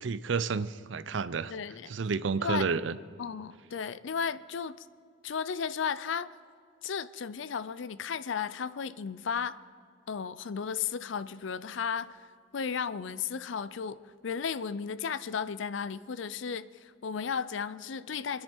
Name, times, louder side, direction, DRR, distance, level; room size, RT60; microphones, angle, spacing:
voice 1, 0.0-1.5 1.9-3.0, right 5 dB, 65° right, 0.5 m, -30 dB
voice 2, 1.5-1.9 2.4-2.7 3.2-4.7 5.2-6.3 6.8-9.6 10.1-12.3 12.5-14.0 14.2-18.4, left 6 dB, 70° left, 0.5 m, -34 dB
26.5 x 10.5 x 4.5 m
head